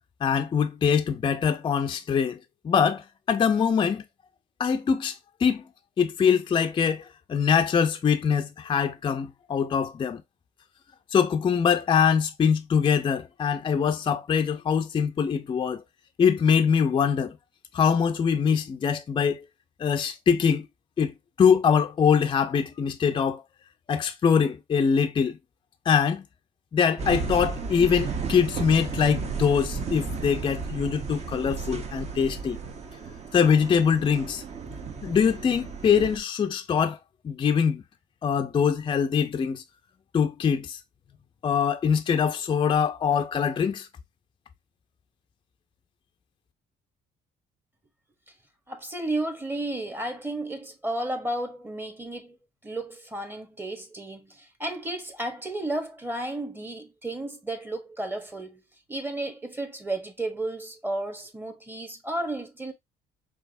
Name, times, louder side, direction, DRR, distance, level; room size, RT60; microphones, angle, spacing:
voice 1, 0.2-2.4 2.6-4.0 4.6-5.7 6.0-10.2 11.1-15.8 16.2-17.4 17.7-19.4 19.8-20.7 21.0-21.1 21.4-23.4 23.9-25.4 25.9-26.3 26.7-32.6 33.3-34.4 35.0-37.0 37.2-37.8 38.2-39.6 40.1-40.8 41.4-43.9, left 7 dB, 30° left, 0.5 m, -23 dB
sound 1, 27.0-36.2, right 5 dB, 40° right, 0.9 m, -34 dB
voice 2, 48.7-52.4 52.6-58.6 58.9-62.7, right 1 dB, 10° right, 1.0 m, -33 dB
4.6 x 3.0 x 2.5 m
cardioid pair, 110°, 17 cm